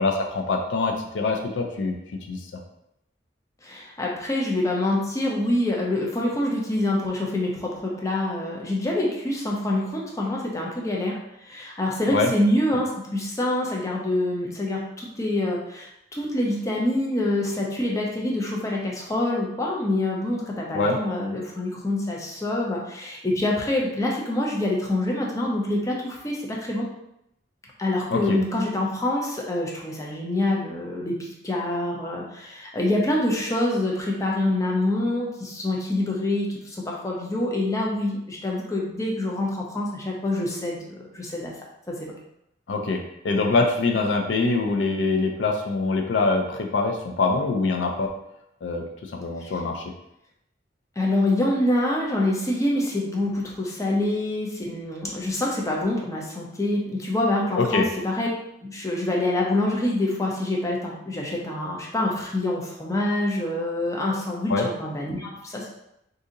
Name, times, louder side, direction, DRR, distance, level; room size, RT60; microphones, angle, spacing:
voice 1, 0.0-2.0 2.3-2.4 12.1-12.3 20.7-21.0 28.1-28.4 42.7-48.1 48.6-49.9 57.6-57.9 64.5-64.7, left 3 dB, 75° left, 3 dB, 0.4 m, -24 dB
voice 2, 3.6-26.9 27.8-41.5 41.9-42.1 49.4-49.5 51.0-58.3 58.6-65.8, left 1 dB, 20° left, -2 dB, 0.5 m, -26 dB
2.7 x 2.6 x 3.7 m, 0.82 s
head